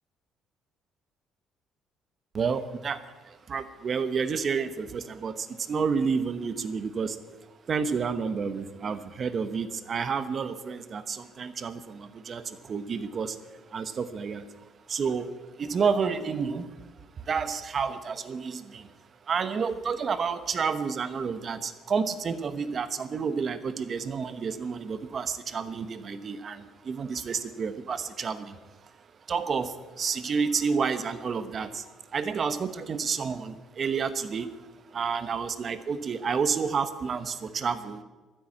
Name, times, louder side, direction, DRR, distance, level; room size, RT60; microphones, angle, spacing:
voice 1, 2.3-7.2 7.7-13.4 13.7-16.7 17.2-18.9 19.2-28.9 29.3-38.0, right 5 dB, 35° right, 12 dB, 1.0 m, -30 dB
12.5 x 10.5 x 8.6 m, 1.2 s
cardioid pair, 150°, 0 cm